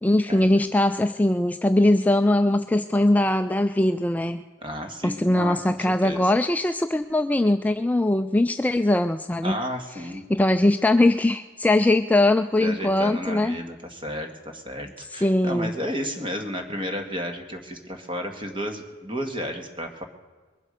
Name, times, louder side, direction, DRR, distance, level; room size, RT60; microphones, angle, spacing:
voice 1, 0.0-4.4 5.0-9.6 9.9-13.6 15.0-15.7, left 1 dB, 10° left, 8 dB, 0.3 m, -21 dB
voice 2, 4.6-6.3 9.4-10.3 12.6-20.0, equal, 25° right, 4 dB, 1.9 m, -32 dB
22.0 x 7.7 x 6.6 m, 1.4 s
head